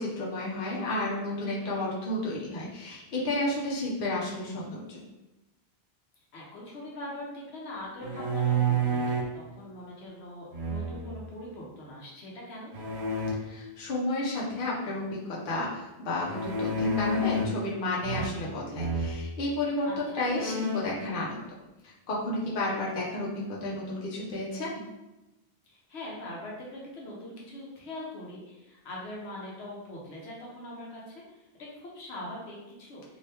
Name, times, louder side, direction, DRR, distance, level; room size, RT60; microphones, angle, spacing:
voice 1, 0.0-5.0 13.4-21.5 21.8-24.8, left 1 dB, 55° left, -5 dB, 0.9 m, -32 dB
voice 2, 1.4-1.7 6.3-12.7 19.8-20.2 25.6-33.0, left 1 dB, 90° left, -3 dB, 1.1 m, -42 dB
sound 1, 8.0-9.4 10.5-11.2 12.7-13.3 16.3-17.6 18.0-18.5 18.8-19.2 19.8-19.9 20.2-21.0, right 2 dB, 85° right, 0.8 m, -29 dB
2.8 x 2.7 x 3.3 m, 0.99 s
omnidirectional pair, 1.1 m